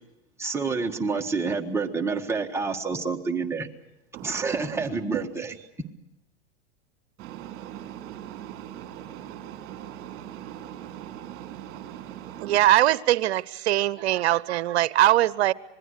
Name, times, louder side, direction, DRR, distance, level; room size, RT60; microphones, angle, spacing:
voice 1, 0.4-3.7 4.2-5.5, right 4 dB, 10° right, 1.6 m, -28 dB
voice 2, 4.1-4.9 5.1-5.2 7.2-12.6, right 12 dB, 40° right, 3.8 m, -39 dB
voice 3, 12.4-15.5, right 14 dB, 70° right, 0.8 m, -21 dB
26.0 x 20.5 x 6.6 m
hypercardioid pair, 120°, 34 cm